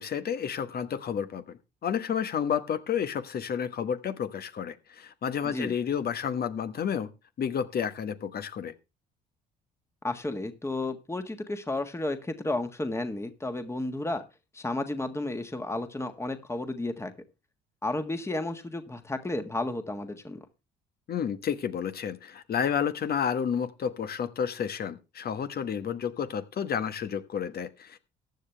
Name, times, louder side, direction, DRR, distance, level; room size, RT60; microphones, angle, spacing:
voice 1, 0.0-7.1 7.4-8.7 21.1-28.0, left 8 dB, 50° left, 11 dB, 1.3 m, -31 dB
voice 2, 10.0-14.2 14.5-17.1 17.8-20.4, left 2 dB, 10° left, 7 dB, 1.6 m, -32 dB
14.5 x 10.0 x 3.4 m, 0.28 s
hypercardioid pair, 60°, 21 cm